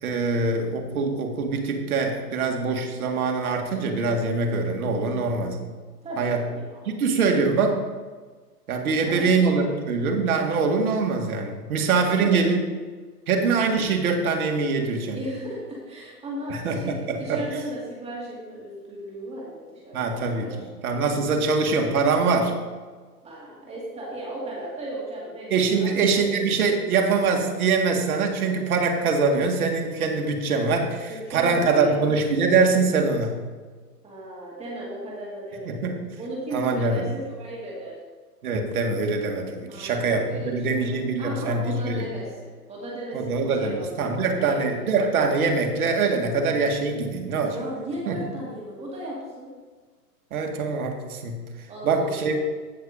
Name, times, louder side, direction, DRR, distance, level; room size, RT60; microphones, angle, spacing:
voice 1, 0.0-5.6 6.2-6.4 6.9-7.8 8.7-12.6 13.3-15.2 16.5-17.4 19.9-22.5 25.5-33.4 35.7-36.0 36.5-37.1 38.4-42.1 43.1-47.5 48.1-48.2 50.3-51.4 51.8-52.3, right 4 dB, 60° right, 3 dB, 2.0 m, -23 dB
voice 2, 5.0-5.3 6.0-6.9 8.8-9.8 12.0-12.5 15.1-20.7 23.2-26.3 31.1-32.3 34.0-35.9 36.2-38.0 39.7-44.8 47.5-49.5 51.7-52.3, right 1 dB, 15° right, -5 dB, 2.1 m, -36 dB
16.0 x 6.4 x 2.7 m, 1.4 s
hypercardioid pair, 135°, 48 cm